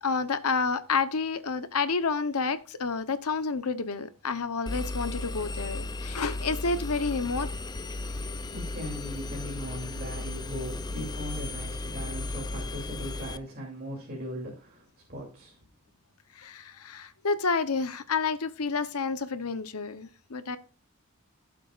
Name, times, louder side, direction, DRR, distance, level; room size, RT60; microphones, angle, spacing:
voice 1, 0.0-7.5 16.3-20.6, left 4 dB, 85° left, 12 dB, 0.9 m, -29 dB
Engine, 4.7-13.4, left 2 dB, 20° left, 0.4 m, -35 dB
voice 2, 8.5-15.6, equal, 45° right, -2 dB, 2.9 m, -39 dB
16.0 x 7.4 x 2.5 m, 0.36 s
head